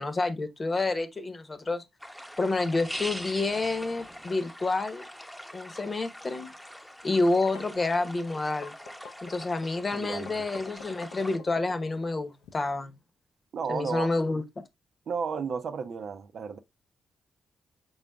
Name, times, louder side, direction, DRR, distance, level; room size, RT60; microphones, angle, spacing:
voice 1, 0.0-1.8 2.4-5.1 5.5-6.5 7.0-8.7 9.2-12.9 13.7-14.4, left 2 dB, 40° left, 0.9 m, -29 dB
sound 1, 2.0-11.4, equal, 5° left, 0.9 m, -43 dB
sound 2, 7.3-12.5, left 4 dB, 85° left, 0.6 m, -47 dB
voice 2, 9.9-10.5 13.5-14.1 15.1-16.6, right 6 dB, 65° right, 0.6 m, -33 dB
4.9 x 3.9 x 2.2 m
hypercardioid pair, 40°, 0 cm